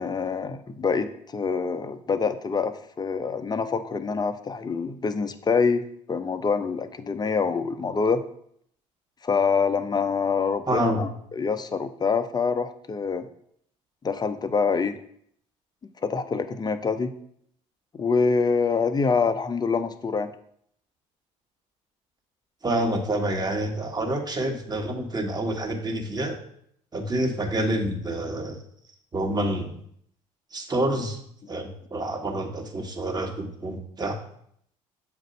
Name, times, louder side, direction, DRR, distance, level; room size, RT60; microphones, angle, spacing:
voice 1, 0.0-5.8 6.1-8.2 9.2-13.3 14.0-15.0 16.0-17.1 18.0-20.3, left 5 dB, 25° left, 10 dB, 0.6 m, -25 dB
voice 2, 10.7-11.0 22.6-26.4 26.9-28.6 29.1-29.8 30.5-31.2 31.5-34.2, right 1 dB, 25° right, 3 dB, 1.3 m, -27 dB
7.3 x 2.6 x 5.3 m, 0.68 s
hypercardioid pair, 60°, 16 cm